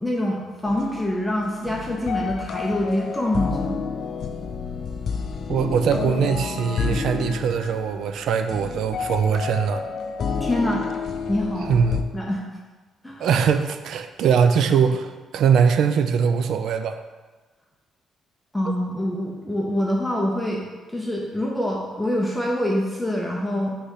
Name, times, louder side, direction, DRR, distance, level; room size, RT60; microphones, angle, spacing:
voice 1, 0.0-3.8 10.4-10.9 11.3-11.8 12.1-12.4 13.0-13.4 18.5-20.6 20.9-23.8, left 1 dB, 5° left, -2 dB, 0.7 m, -25 dB
sound 1, 0.7-12.0, left 5 dB, 45° left, 0.4 m, -30 dB
voice 2, 5.5-9.8 11.7-12.0 13.2-17.0, right 7 dB, 65° right, 9 dB, 0.4 m, -21 dB
6.5 x 3.2 x 5.7 m, 1.3 s
cardioid pair, 165°, 0 cm